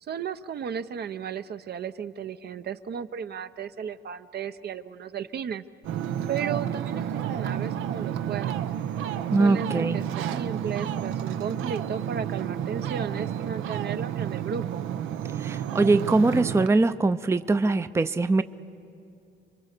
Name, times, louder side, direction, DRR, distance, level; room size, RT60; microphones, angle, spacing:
voice 1, 0.1-5.6 6.3-8.7 9.4-14.8, right 7 dB, 55° right, 11 dB, 0.8 m, -34 dB
Ocean, 5.8-16.7, right 9 dB, 85° right, 0.8 m, -31 dB
voice 2, 9.3-10.0 15.4-18.4, right 3 dB, 15° right, 11 dB, 0.6 m, -22 dB
29.5 x 23.5 x 6.7 m, 2.6 s
cardioid pair, 90°, 20 cm